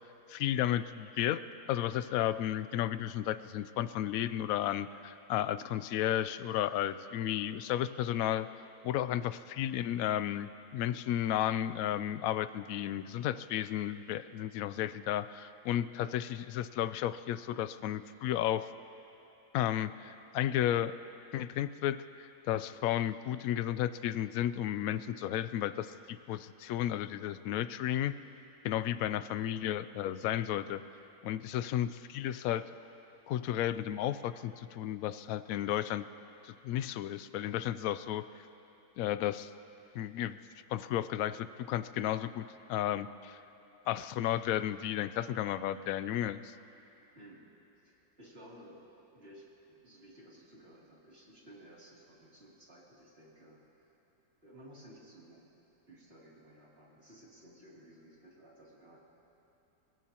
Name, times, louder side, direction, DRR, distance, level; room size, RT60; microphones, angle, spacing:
voice 1, 0.3-1.4 1.7-8.5 8.8-18.7 19.5-20.9 21.3-28.1 28.6-30.8 31.2-32.7 33.3-36.1 36.4-38.3 39.0-39.5 39.9-40.4 40.7-43.4 43.9-46.5, left 12 dB, 70° left, 13 dB, 0.9 m, -33 dB
voice 2, 28.8-29.4 47.1-47.5 47.8-48.8 49.1-54.0 54.4-55.5 55.9-59.0, right 1 dB, 35° right, -5 dB, 3.1 m, -56 dB
29.0 x 16.5 x 2.9 m, 2.9 s
omnidirectional pair, 1.8 m